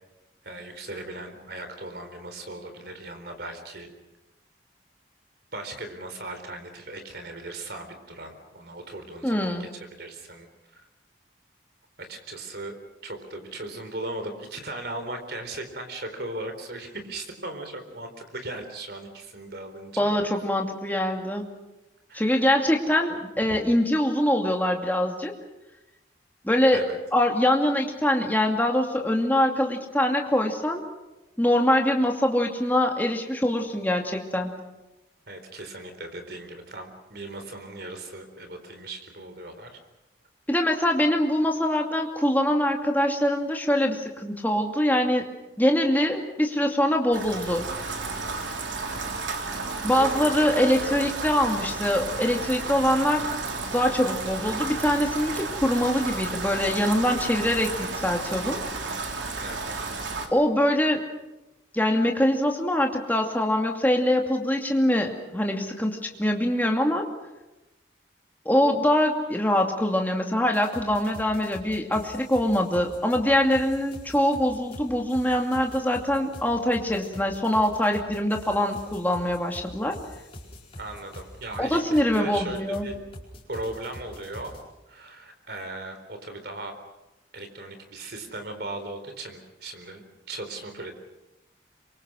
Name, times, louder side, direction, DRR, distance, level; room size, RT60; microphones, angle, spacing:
voice 1, 0.4-3.9 5.5-10.5 10.7-10.8 12.0-12.7 13.0-20.1 22.1-22.5 23.5-23.6 26.7-27.0 35.3-39.8 50.0-51.0 59.4-59.8 80.8-83.0 83.5-84.5 84.9-86.8 87.3-91.0, right 2 dB, 60° right, 7 dB, 4.2 m, -38 dB
voice 2, 9.2-9.7 20.0-21.5 22.1-25.3 26.4-26.8 27.1-30.8 31.4-34.5 40.5-45.2 45.6-47.7 49.8-53.3 53.7-58.6 60.3-61.0 61.7-67.1 68.4-80.0 81.6-82.9, left 1 dB, 10° left, 2 dB, 2.5 m, -23 dB
Rain, 47.1-60.3, right 3 dB, 85° right, 3.3 m, -32 dB
sound 1, 70.5-84.6, left 1 dB, 30° left, 4.8 m, -44 dB
27.0 x 24.0 x 6.4 m, 1.0 s
head